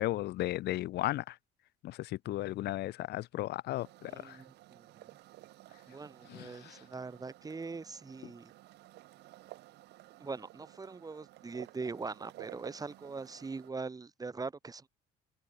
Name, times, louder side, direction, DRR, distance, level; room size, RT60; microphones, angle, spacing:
voice 1, 0.0-1.4 1.8-4.4 6.3-6.8 8.2-8.3, left 16 dB, 75° left, 2.7 m, -35 dB
sound 1, 3.7-13.7, right 17 dB, 80° right, 7.5 m, -54 dB
voice 2, 4.1-4.8 5.9-8.5 10.2-14.9, right 4 dB, 20° right, 2.5 m, -42 dB
open air
cardioid pair, 110°, 17 cm